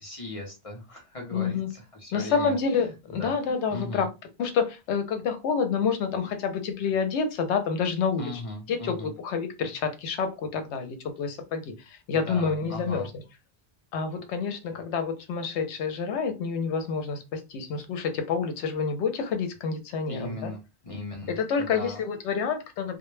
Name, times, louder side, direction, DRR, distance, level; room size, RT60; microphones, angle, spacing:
voice 1, 0.0-3.4 3.7-4.1 8.1-9.1 12.1-13.1 20.1-22.0, left 1 dB, 40° left, 0 dB, 0.6 m, -38 dB
voice 2, 1.3-1.7 2.1-4.1 4.4-8.4 8.7-13.1 13.9-20.5 21.3-23.0, left 5 dB, 85° left, 7 dB, 0.9 m, -28 dB
2.1 x 2.0 x 3.1 m, 0.27 s
omnidirectional pair, 1.1 m